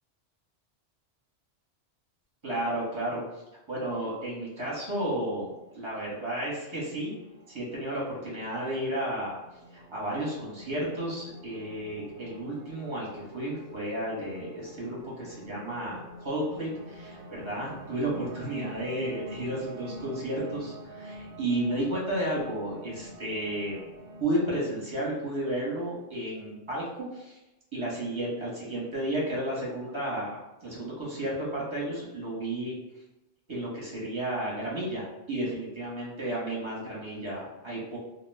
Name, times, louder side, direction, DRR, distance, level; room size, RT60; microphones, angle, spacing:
voice 1, 2.4-3.4 3.7-7.1 7.5-23.8 24.2-27.4 27.7-33.0 33.5-38.0, right 1 dB, 25° right, -6 dB, 0.9 m, -33 dB
sound 1, 5.2-24.2, right 1 dB, 60° right, 0.7 m, -47 dB
2.2 x 2.2 x 3.3 m, 0.97 s
omnidirectional pair, 1.3 m